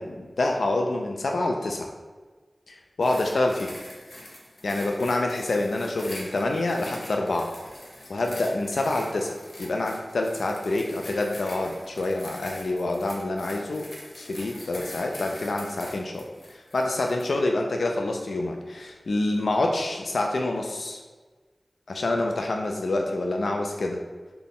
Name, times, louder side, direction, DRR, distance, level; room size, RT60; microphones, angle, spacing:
voice 1, 0.0-1.9 2.7-3.7 4.6-7.5 8.1-13.9 14.2-21.0 21.9-24.0, left 2 dB, 90° left, 2 dB, 0.3 m, -27 dB
sound 1, 3.0-17.3 18.0-18.1, left 1 dB, 70° left, 0.7 m, -43 dB
4.0 x 2.2 x 3.5 m, 1.4 s
wide cardioid pair, 80°, 0 cm